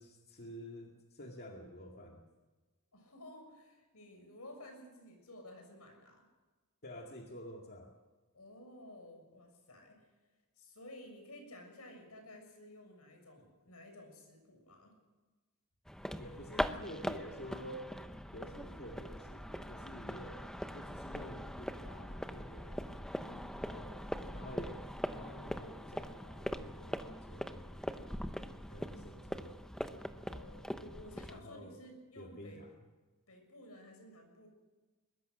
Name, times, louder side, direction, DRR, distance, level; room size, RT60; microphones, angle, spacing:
voice 1, 0.0-2.2 6.8-7.9 16.2-17.9 18.3-20.5 20.7-22.8 23.6-23.9 24.3-27.8 28.7-29.6 31.2-31.8 32.2-32.7, equal, 45° left, 1 dB, 2.1 m, -49 dB
voice 2, 2.9-6.2 8.3-10.1 10.6-14.9 23.2-23.6 30.3-32.6 33.3-34.5, left 1 dB, 80° left, 4 dB, 6.7 m, -54 dB
sound 1, 15.9-31.4, equal, 5° left, 0.9 m, -42 dB
22.0 x 21.5 x 6.5 m, 1.3 s
head